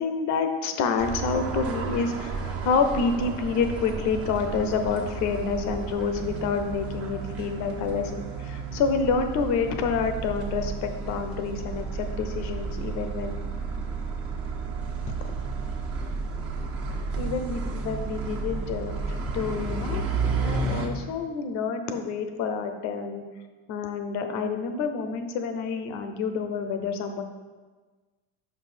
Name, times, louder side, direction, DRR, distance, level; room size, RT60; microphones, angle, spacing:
voice 1, 0.0-8.1 8.4-13.4 15.1-15.3 17.2-20.0 20.3-23.2 23.7-27.2, left 5 dB, 60° left, 7 dB, 0.9 m, -28 dB
sound 1, 1.0-20.9, right 4 dB, 45° right, 1.3 m, -32 dB
5.4 x 5.4 x 4.4 m, 1.3 s
supercardioid pair, 105°, 32 cm